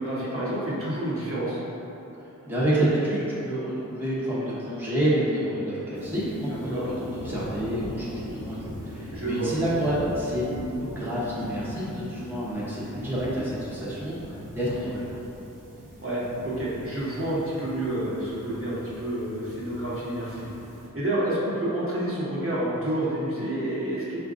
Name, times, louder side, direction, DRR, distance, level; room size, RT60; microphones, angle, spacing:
voice 1, 0.0-1.6 6.5-6.9 9.1-9.5 16.0-20.5 20.9-24.2, right 1 dB, 45° right, -9 dB, 1.0 m, -29 dB
voice 2, 2.1-15.1, right 1 dB, 5° right, -9 dB, 0.9 m, -28 dB
sound 1, 5.9-20.9, equal, 90° right, 0.8 m, -40 dB
4.4 x 2.4 x 3.7 m, 3.0 s
wide cardioid pair, 60°, 32 cm